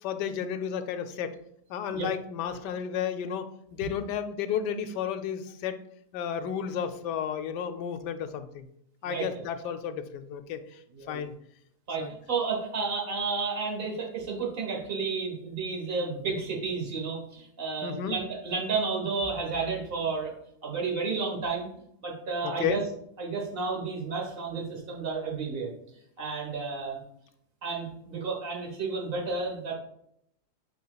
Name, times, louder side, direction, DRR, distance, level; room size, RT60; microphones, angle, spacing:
voice 1, 0.0-1.4 1.7-5.8 6.1-8.7 9.0-10.8 11.1-11.3 12.0-12.1 17.8-18.2 22.4-22.8, left 8 dB, 85° left, 9 dB, 1.2 m, -32 dB
voice 2, 9.0-9.4 10.9-11.2 11.9-20.3 20.6-21.7 22.0-22.8 23.2-25.7 26.2-27.0 27.6-29.7, right 4 dB, 35° right, 0 dB, 1.4 m, -32 dB
9.3 x 4.4 x 2.3 m, 0.73 s
omnidirectional pair, 1.8 m